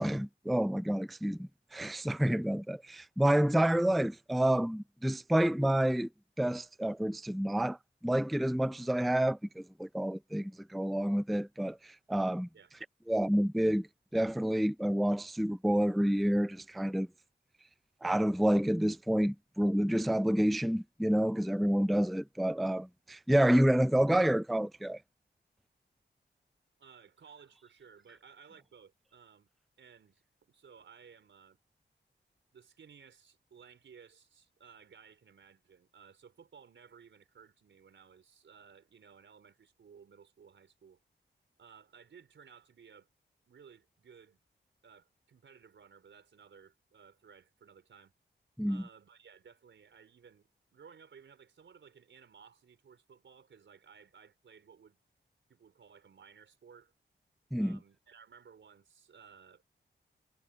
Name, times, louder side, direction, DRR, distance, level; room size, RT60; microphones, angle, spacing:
voice 1, 0.0-6.1 6.4-7.8 8.0-12.5 13.1-13.9 14.1-17.1 18.0-25.0 48.6-48.8 57.5-57.8, right 1 dB, ahead, 0.4 m, -29 dB
voice 2, 26.8-29.5 29.8-31.6 32.5-41.0 41.6-43.1 43.4-44.4 44.8-48.1 48.7-55.0 55.5-56.9 57.6-59.6, right 6 dB, 80° right, 4.6 m, -58 dB
wide cardioid pair, 130°, 19 cm